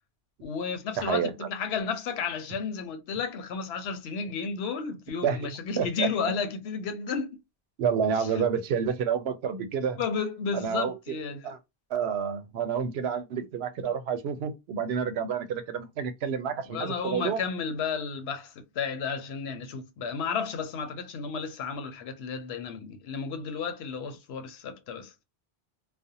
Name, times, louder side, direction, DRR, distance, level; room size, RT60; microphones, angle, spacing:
voice 1, 0.4-7.4 8.2-8.3 10.0-11.4 16.7-25.1, left 5 dB, 85° left, 0.9 m, -33 dB
voice 2, 1.0-1.5 5.2-6.1 7.8-10.0 10.5-11.2 11.4-11.6 11.9-17.4, right 7 dB, 85° right, 0.8 m, -29 dB
2.5 x 2.1 x 2.7 m
omnidirectional pair, 1.0 m